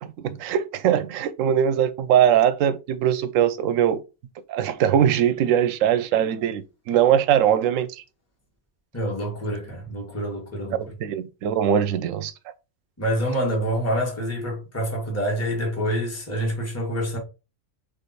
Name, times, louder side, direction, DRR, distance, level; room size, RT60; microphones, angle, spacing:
voice 1, 0.0-4.0 4.5-8.0 10.7-12.3, right 9 dB, 70° right, 0.9 m, -21 dB
voice 2, 8.9-10.8 13.0-17.2, equal, 10° left, 1.3 m, -27 dB
3.5 x 3.4 x 4.0 m
omnidirectional pair, 1.5 m